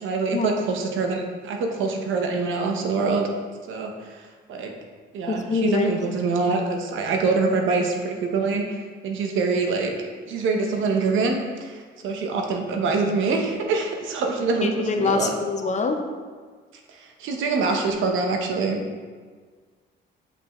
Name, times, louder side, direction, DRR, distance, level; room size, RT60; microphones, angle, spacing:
voice 1, 0.0-3.3 3.7-4.7 5.1-15.3 17.0-18.8, right 4 dB, 80° right, 3 dB, 0.9 m, -25 dB
voice 2, 5.3-5.9 14.6-16.0, left 4 dB, 35° left, 5 dB, 0.7 m, -24 dB
6.1 x 5.5 x 3.1 m, 1.5 s
cardioid pair, 90°, 20 cm